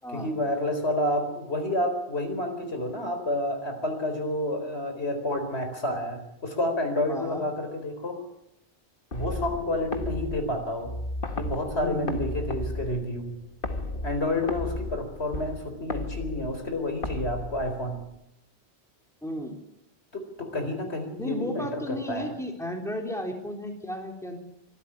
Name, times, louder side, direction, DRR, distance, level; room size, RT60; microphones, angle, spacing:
voice 1, 0.1-8.2 9.1-10.9 11.3-13.3 14.0-18.0 20.1-22.3, left 1 dB, 85° left, 6 dB, 4.5 m, -29 dB
voice 2, 7.1-7.4 11.8-12.2 19.2-19.6 21.2-24.4, left 1 dB, 5° left, 2 dB, 3.6 m, -33 dB
sound 1, 9.1-18.2, left 2 dB, 55° left, 1.8 m, -35 dB
25.0 x 12.5 x 10.0 m, 0.83 s
omnidirectional pair, 1.1 m